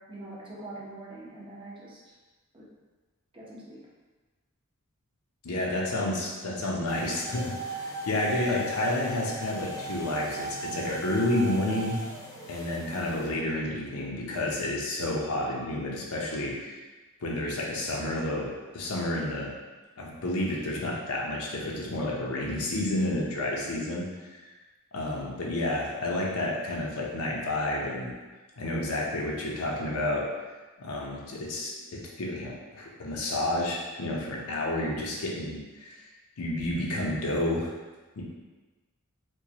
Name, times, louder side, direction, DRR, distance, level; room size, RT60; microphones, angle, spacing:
voice 1, 0.0-2.1 2.5-2.7 3.3-3.9, right 2 dB, 25° right, -6 dB, 0.8 m, -44 dB
voice 2, 5.4-7.8 8.1-12.0 12.5-16.8 17.2-18.5 18.7-19.5 20.0-24.1 24.3-24.4 24.9-28.1 28.6-30.2 30.8-36.0 36.4-37.7 38.2-38.3, left 1 dB, 75° left, -3 dB, 0.7 m, -30 dB
sound 1, 6.9-13.3, right 2 dB, 15° left, 0.5 m, -38 dB
4.5 x 2.2 x 2.8 m, 1.3 s
head